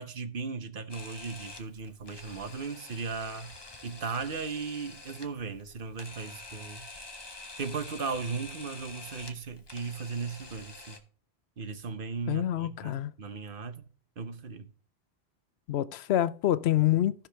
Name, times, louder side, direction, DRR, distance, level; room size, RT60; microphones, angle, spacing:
voice 1, 0.0-3.5 3.8-6.9 7.6-11.0 11.6-13.8 14.2-14.7, right 5 dB, 60° right, 1.0 m, -37 dB
Camera, 0.9-11.0, left 3 dB, 25° left, 1.0 m, -47 dB
voice 2, 12.3-13.1 15.7-17.3, left 13 dB, 85° left, 0.8 m, -27 dB
14.5 x 5.9 x 3.3 m
omnidirectional pair, 1.1 m